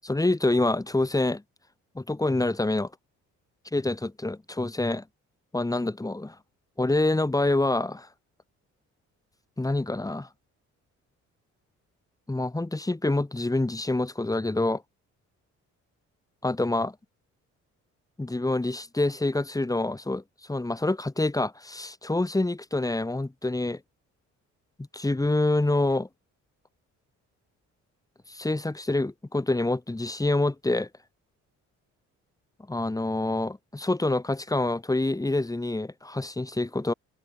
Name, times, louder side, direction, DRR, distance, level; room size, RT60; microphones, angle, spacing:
voice 1, 0.0-1.4 1.9-2.9 3.7-5.0 5.5-6.4 6.8-8.1 9.6-10.3 12.3-14.8 16.4-16.9 18.2-20.2 20.5-23.8 24.9-26.1 28.3-30.9 32.7-36.9, left 2 dB, 10° left, 2.4 m, -26 dB
cardioid pair, 90°, 30 cm